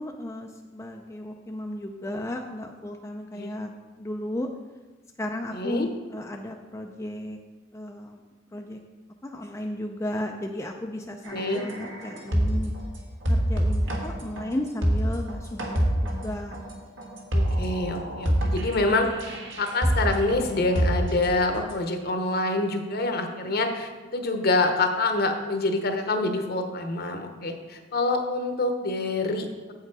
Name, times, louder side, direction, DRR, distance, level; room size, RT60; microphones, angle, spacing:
voice 1, 0.0-3.7 4.0-4.5 5.2-7.4 7.7-8.2 8.5-8.8 9.2-12.7 13.3-16.6, left 1 dB, 15° left, 2 dB, 0.4 m, -34 dB
voice 2, 5.5-5.9 11.3-11.6 17.3-29.7, left 2 dB, 50° left, 5 dB, 0.9 m, -26 dB
sound 1, 11.2-12.8 13.2-21.7, equal, 70° right, 1.5 m, -27 dB
8.0 x 6.6 x 4.7 m, 1.3 s
head